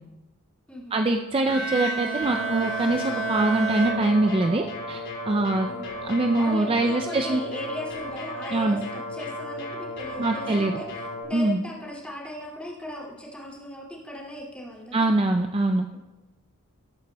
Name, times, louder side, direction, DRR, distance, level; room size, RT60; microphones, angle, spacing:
voice 1, 0.9-5.7 6.0-7.4 8.5-8.8 10.2-10.8 11.3-11.6 14.9-15.9, right 2 dB, 25° right, 5 dB, 0.4 m, -23 dB
Bowed string instrument, 1.5-4.8, right 3 dB, 60° right, 1.6 m, -30 dB
sound 1, 2.2-11.2, left 1 dB, 55° left, 3.9 m, -35 dB
voice 2, 5.7-15.1, left 1 dB, 5° left, -4 dB, 2.4 m, -38 dB
19.0 x 9.1 x 2.3 m, 1.1 s
head